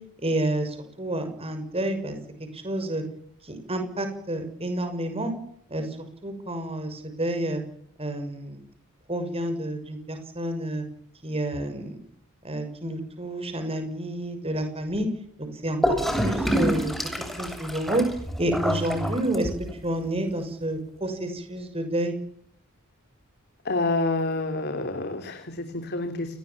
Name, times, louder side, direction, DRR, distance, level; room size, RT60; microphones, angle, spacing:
voice 1, 0.2-2.2 2.5-3.0 3.4-5.3 5.7-6.0 6.2-7.6 8.0-8.6 9.1-10.8 11.2-12.0 12.4-15.1 15.4-17.1 17.4-18.1 18.4-22.2, right 1 dB, 25° right, 7 dB, 6.3 m, -29 dB
Gurgling / Toilet flush, 15.8-19.8, equal, ahead, 7.6 m, -27 dB
voice 2, 23.6-26.3, left 2 dB, 50° left, 6 dB, 3.3 m, -28 dB
29.0 x 21.0 x 7.3 m, 0.67 s
head